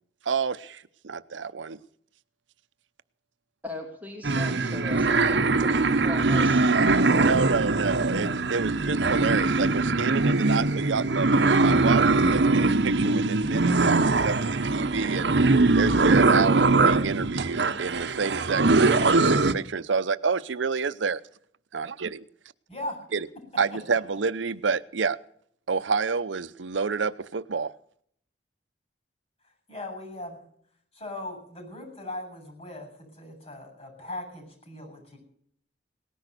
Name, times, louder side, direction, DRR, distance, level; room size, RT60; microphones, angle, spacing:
voice 1, 0.2-1.8 7.2-14.4 14.6-15.4 15.7-21.2 21.7-22.2 23.1-23.3 23.6-25.2 25.7-27.7, right 5 dB, 90° right, 15 dB, 0.7 m, -29 dB
voice 2, 3.6-7.0, left 1 dB, 10° right, 1 dB, 2.5 m, -39 dB
sound 1, 4.2-19.5, right 3 dB, 65° right, 0.9 m, -22 dB
voice 3, 22.7-23.0 29.7-30.4 30.9-35.2, left 1 dB, 35° left, 3 dB, 7.4 m, -39 dB
18.5 x 10.5 x 6.7 m, 0.64 s
head